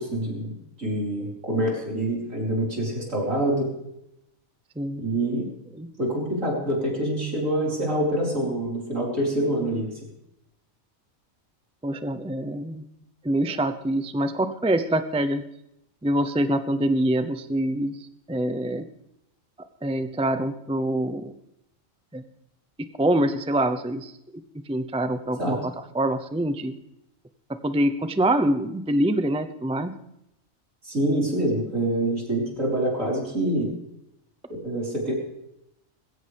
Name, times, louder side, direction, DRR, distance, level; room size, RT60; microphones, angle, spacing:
voice 1, 0.0-3.7 5.0-5.5 6.0-9.9 25.4-25.6 30.8-33.7 34.6-35.1, right 1 dB, 65° right, -3 dB, 5.2 m, -26 dB
voice 2, 11.8-12.8 13.2-15.4 16.0-18.0 18.3-18.8 19.8-21.3 22.1-22.2 23.0-24.1 24.7-26.7 27.6-29.9, right 1 dB, 5° right, 9 dB, 0.5 m, -25 dB
20.5 x 16.5 x 3.5 m, 0.82 s
omnidirectional pair, 1.4 m